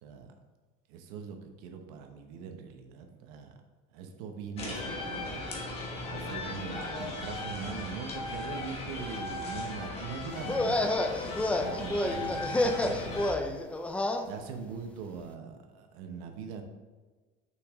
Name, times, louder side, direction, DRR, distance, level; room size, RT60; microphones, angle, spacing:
voice 1, 0.0-0.4 0.9-3.6 3.9-5.8 6.1-11.0 11.6-13.6 14.2-16.6, right 6 dB, 85° right, 5 dB, 1.0 m, -42 dB
sound 1, 4.6-13.3, left 2 dB, 30° left, 1.3 m, -37 dB
sound 2, 10.4-14.3, left 1 dB, 5° left, 0.4 m, -29 dB
6.2 x 5.8 x 3.6 m, 1.3 s
cardioid pair, 155°, 19 cm